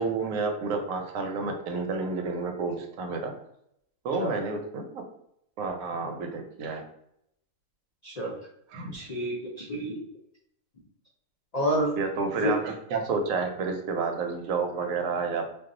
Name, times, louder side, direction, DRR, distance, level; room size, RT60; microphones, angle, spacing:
voice 1, 0.0-3.3 4.0-5.0 5.6-6.8 8.7-8.9 12.0-15.4, right 4 dB, 80° right, 4 dB, 1.0 m, -30 dB
voice 2, 8.0-8.4 8.9-10.0 11.5-11.9 12.4-12.5, equal, 65° left, -3 dB, 0.4 m, -29 dB
2.3 x 2.3 x 3.7 m, 0.75 s
omnidirectional pair, 1.4 m